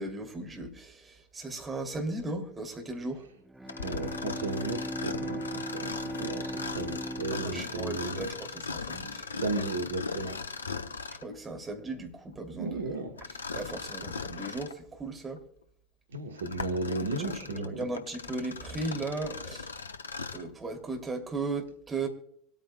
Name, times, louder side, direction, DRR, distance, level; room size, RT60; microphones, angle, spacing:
voice 1, 0.0-3.3 7.3-9.3 11.1-13.1 13.5-15.4 17.5-19.7 20.3-22.1, right 2 dB, 25° right, 2.8 m, -36 dB
Bowed string instrument, 3.4-9.0, equal, 10° right, 0.5 m, -39 dB
Mechanisms, 3.7-11.3 13.2-14.8 15.4-15.5 16.1-20.5, left 5 dB, 80° left, 0.7 m, -39 dB
voice 2, 3.8-8.3 9.4-10.4 12.6-13.1 16.1-17.9, right 2 dB, 75° right, 1.5 m, -34 dB
25.5 x 9.0 x 2.3 m
figure-of-eight pair, 70°, 0 cm